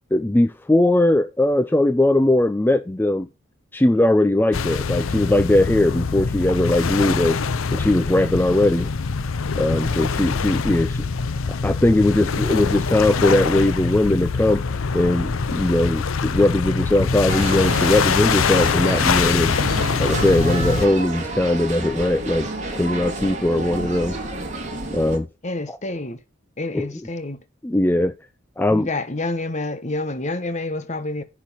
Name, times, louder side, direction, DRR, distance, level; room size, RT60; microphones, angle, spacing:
voice 1, 0.1-3.3 3.7-7.4 7.7-8.9 9.6-11.1 11.6-14.6 14.9-19.5 20.0-22.5 22.7-24.2 24.9-25.3 25.7-25.8 26.7-26.9 27.6-28.1 28.6-28.9, left 1 dB, 10° left, 0.4 m, -19 dB
sound 1, 4.5-20.9, left 5 dB, 85° left, 0.6 m, -24 dB
voice 2, 9.7-10.0 25.4-26.2 26.6-27.4 28.7-31.2, left 2 dB, 35° left, 1.1 m, -28 dB
sound 2, 17.3-25.2, right 2 dB, 35° right, 2.7 m, -30 dB
10.5 x 4.6 x 5.6 m
head